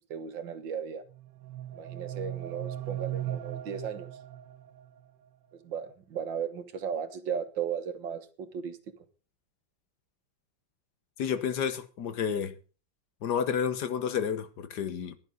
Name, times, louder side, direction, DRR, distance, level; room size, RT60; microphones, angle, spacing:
voice 1, 0.1-1.0 1.7-4.1 5.5-8.8, right 7 dB, 90° right, 2.1 m, -36 dB
sound 1, 1.1-5.1, right 12 dB, 70° right, 1.4 m, -38 dB
voice 2, 11.2-12.5 13.2-15.2, left 7 dB, 65° left, 1.6 m, -30 dB
16.0 x 11.0 x 3.9 m
omnidirectional pair, 2.0 m